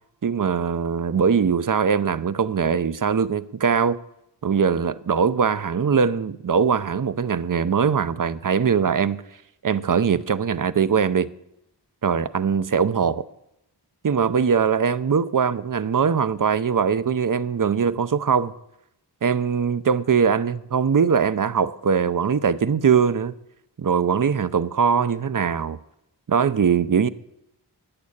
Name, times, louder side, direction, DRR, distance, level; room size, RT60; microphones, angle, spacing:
voice 1, 0.2-4.0 4.4-9.2 9.6-11.3 12.0-13.2 14.0-18.5 19.2-23.3 23.8-25.8 26.3-27.1, right 6 dB, 50° right, 0.6 m, -21 dB
10.5 x 8.8 x 8.5 m
wide cardioid pair, 65°, 43 cm